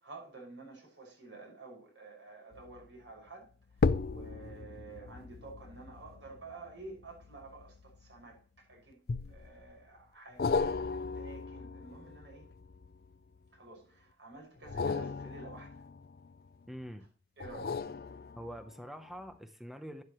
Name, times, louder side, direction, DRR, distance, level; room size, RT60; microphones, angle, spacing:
voice 1, 0.0-9.0 9.3-12.5 13.5-15.9 17.4-17.9, right 3 dB, 85° right, 5.9 m, -50 dB
sound 1, 2.5-2.9 3.7-8.4 9.1-9.7 10.4-13.4 14.6-16.7 17.4-18.8 19.3-19.4, left 4 dB, 55° left, 0.4 m, -36 dB
voice 2, 16.7-17.1 18.3-20.0, equal, ahead, 0.7 m, -45 dB
12.0 x 9.6 x 3.0 m
head